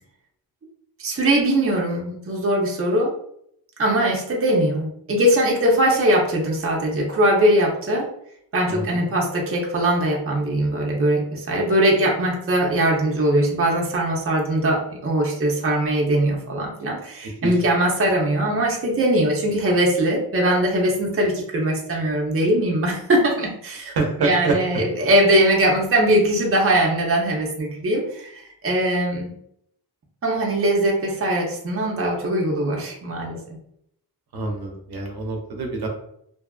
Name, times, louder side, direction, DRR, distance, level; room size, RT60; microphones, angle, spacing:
voice 1, 1.0-3.1 3.8-8.1 8.5-23.9 24.2-29.3 30.2-33.4, right 1 dB, 35° right, -2 dB, 0.6 m, -21 dB
voice 2, 8.7-9.1 17.4-17.6 24.0-24.8 34.3-35.9, right 3 dB, 75° right, 1 dB, 0.6 m, -26 dB
2.6 x 2.3 x 2.3 m, 0.72 s
wide cardioid pair, 130°, 38 cm